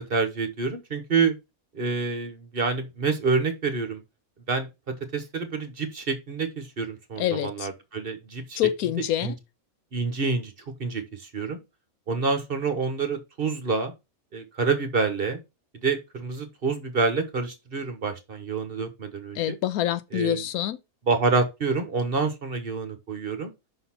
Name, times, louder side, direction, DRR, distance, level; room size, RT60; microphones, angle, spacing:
voice 1, 0.0-1.3 1.7-4.0 4.5-4.7 5.1-8.6 9.2-9.3 9.9-10.5 10.8-11.6 12.1-13.9 14.3-15.4 15.8-19.6 20.1-20.4 21.1-23.5, right 4 dB, 40° right, 1.2 m, -27 dB
voice 2, 7.2-7.7 8.6-9.3 19.3-20.8, left 13 dB, 80° left, 1.1 m, -26 dB
5.7 x 4.0 x 5.7 m
omnidirectional pair, 1.6 m